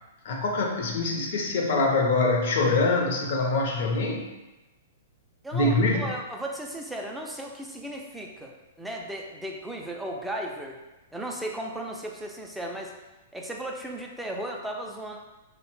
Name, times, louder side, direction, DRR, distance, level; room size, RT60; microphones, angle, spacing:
voice 1, 0.2-4.3 5.5-6.0, left 3 dB, 60° left, 1 dB, 0.6 m, -24 dB
voice 2, 5.4-10.8 11.1-12.9 13.3-15.2, right 1 dB, 5° right, 0 dB, 0.3 m, -35 dB
2.7 x 2.1 x 3.0 m, 1.1 s
hypercardioid pair, 140°, 0 cm